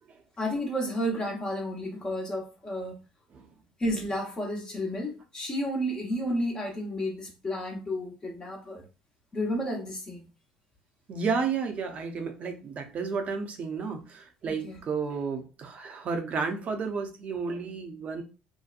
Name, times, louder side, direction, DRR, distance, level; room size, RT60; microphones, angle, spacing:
voice 1, 0.4-3.0 3.8-8.8 9.3-10.3 14.5-14.8, equal, 25° left, 1.0 m, -32 dB
voice 2, 11.1-18.2, right 5 dB, 45° right, 0.7 m, -32 dB
2.8 x 2.1 x 2.5 m
hypercardioid pair, 65°, 3 cm